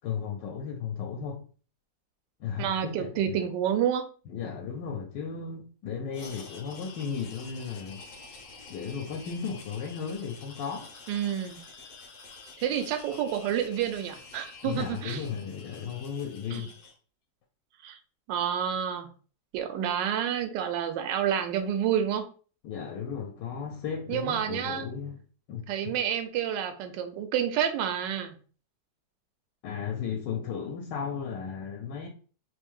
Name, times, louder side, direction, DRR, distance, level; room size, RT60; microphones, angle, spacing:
voice 1, 0.0-1.4 2.4-3.4 4.3-8.0 8.7-10.9 14.6-16.7 22.6-25.2 25.5-25.9 29.6-32.1, left 6 dB, 80° left, 1.3 m, -35 dB
voice 2, 2.6-4.0 11.1-11.6 12.6-15.2 16.5-16.7 17.8-18.0 18.3-19.1 19.5-22.3 24.1-24.9 25.7-28.3, right 9 dB, 85° right, 1.2 m, -29 dB
sound 1, 6.1-16.9, left 4 dB, 60° left, 1.0 m, -48 dB
3.1 x 2.6 x 3.5 m
omnidirectional pair, 1.9 m